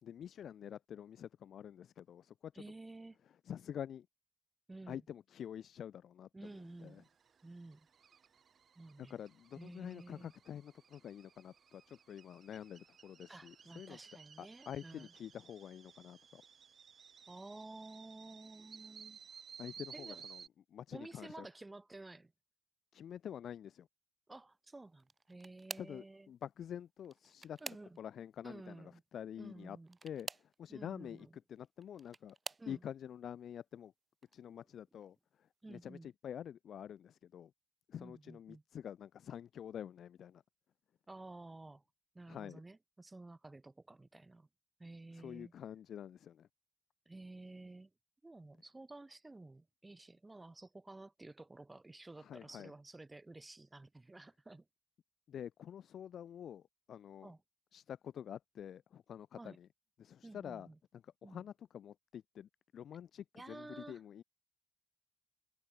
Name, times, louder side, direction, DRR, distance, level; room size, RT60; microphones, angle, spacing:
voice 1, 0.0-2.6 3.4-4.1 4.9-6.3 6.8-7.0 9.0-14.0 14.4-16.4 19.6-20.4 20.7-21.5 22.9-23.9 25.8-27.6 28.0-29.8 30.0-30.3 30.6-32.4 32.7-33.9 34.3-35.1 35.7-37.5 37.9-40.4 42.3-42.6 45.1-46.5 52.2-52.7 55.3-56.6 56.9-57.3 57.7-59.7 60.0-60.7 61.2-64.2, left 9 dB, 75° left, 1.2 m, -47 dB
voice 2, 2.5-3.2 4.7-5.0 6.3-7.1 7.4-7.9 8.8-9.2 9.6-10.3 13.3-15.1 17.3-19.2 19.9-20.2 20.9-22.3 24.3-26.3 27.6-28.0 28.4-29.0 29.4-30.0 30.7-31.4 32.6-32.8 35.6-36.1 38.0-38.6 41.1-41.8 42.1-44.5 44.8-45.5 47.1-47.9 48.2-54.7 57.2-57.4 59.4-59.6 60.2-60.8 61.2-61.5 63.3-64.0, right 2 dB, 25° right, 5.7 m, -52 dB
sound 1, 6.4-20.5, right 7 dB, 65° right, 6.8 m, -57 dB
sound 2, 25.0-26.0 27.0-28.3 29.9-30.6 31.6-32.7 33.5-33.8 34.2-34.4 35.7-35.8, right 4 dB, 45° right, 0.7 m, -48 dB
supercardioid pair, 50°, 0 cm